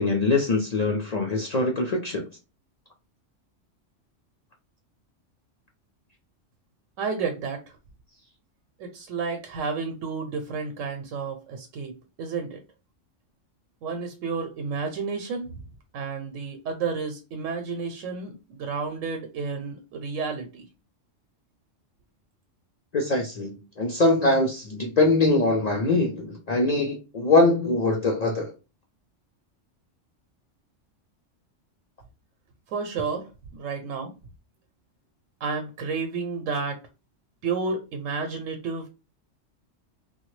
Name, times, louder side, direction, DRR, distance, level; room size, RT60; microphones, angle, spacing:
voice 1, 0.0-2.2 22.9-23.5 23.8-28.5, left 2 dB, 55° left, 0.4 m, -22 dB
voice 2, 7.0-7.6 8.8-11.9 12.2-12.6 13.8-15.5 15.9-20.6 32.7-34.1 35.4-36.8 37.4-38.9, right 5 dB, 85° right, 1.0 m, -31 dB
3.2 x 2.2 x 3.1 m
omnidirectional pair, 1.3 m